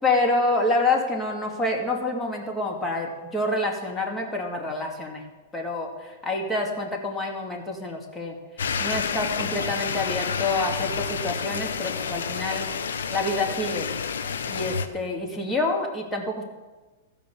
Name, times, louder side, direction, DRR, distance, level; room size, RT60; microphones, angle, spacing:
voice 1, 0.0-5.2 5.5-8.4 8.8-12.7 13.1-13.9 14.5-16.4, left 2 dB, 10° left, 0 dB, 2.2 m, -27 dB
sound 1, 8.6-14.9, left 6 dB, 80° left, 0.8 m, -29 dB
14.5 x 5.1 x 7.0 m, 1.2 s
hypercardioid pair, 115°, 0 cm